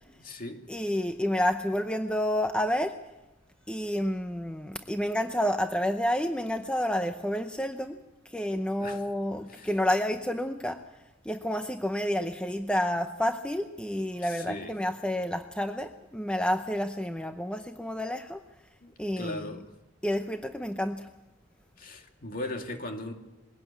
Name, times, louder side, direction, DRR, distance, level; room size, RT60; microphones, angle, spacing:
voice 1, 0.1-0.7 8.8-9.0 9.5-9.7 14.2-14.8 18.8-19.7 21.8-23.1, left 1 dB, 45° left, 2.4 m, -38 dB
voice 2, 0.7-3.0 3.7-10.8 11.2-18.4 19.0-19.5 20.0-21.1, equal, 5° left, 0.7 m, -29 dB
22.0 x 17.5 x 8.4 m
head